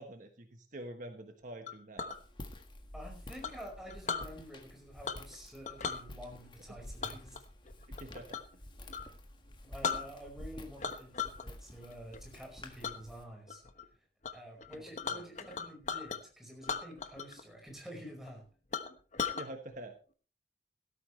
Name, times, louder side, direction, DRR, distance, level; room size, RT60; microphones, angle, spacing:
voice 1, 0.0-2.1 8.0-8.4 15.1-15.2 19.4-19.9, right 1 dB, 45° right, 5 dB, 1.3 m, -46 dB
Chink clink, 1.7-2.2 3.4-4.3 5.0-5.4 5.6-6.0 7.0-8.5 8.9-9.1 9.5-9.6 9.8-10.5 10.8-11.4 11.8-12.2 12.8-13.0 13.5-13.8 14.2-14.3 14.6-16.2 16.6-17.4 17.7-17.8 18.3-18.4 18.7-19.5, left 6 dB, 45° left, 1.1 m, -37 dB
Walk footsteps, 2.1-13.2, left 1 dB, 25° left, 1.7 m, -50 dB
voice 2, 2.9-7.4 9.6-13.6 14.3-18.4, equal, ahead, 0 dB, 5.1 m, -49 dB
16.5 x 13.0 x 3.2 m, 0.38 s
head